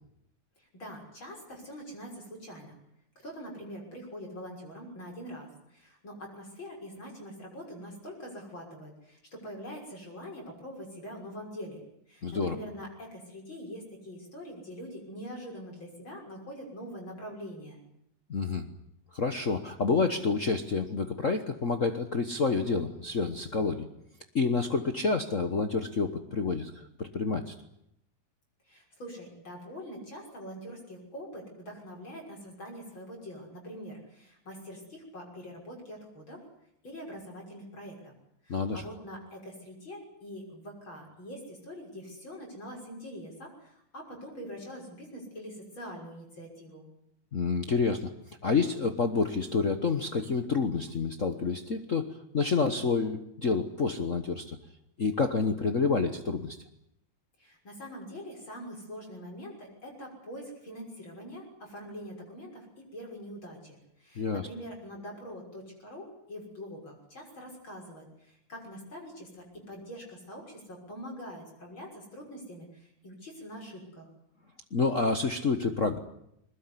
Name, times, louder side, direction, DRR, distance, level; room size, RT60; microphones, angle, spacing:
voice 1, 0.6-2.8 3.2-11.8 12.1-17.8 28.7-36.4 36.8-38.1 38.4-46.8 57.4-74.1, equal, 40° left, 0 dB, 6.9 m, -44 dB
voice 2, 12.2-12.5 18.3-18.7 19.1-23.9 24.3-27.5 38.5-38.8 47.3-48.1 48.4-54.6 55.0-56.6 64.2-64.5 74.7-76.0, left 4 dB, 80° left, 8 dB, 0.7 m, -28 dB
22.5 x 20.5 x 9.8 m, 0.78 s
omnidirectional pair, 3.5 m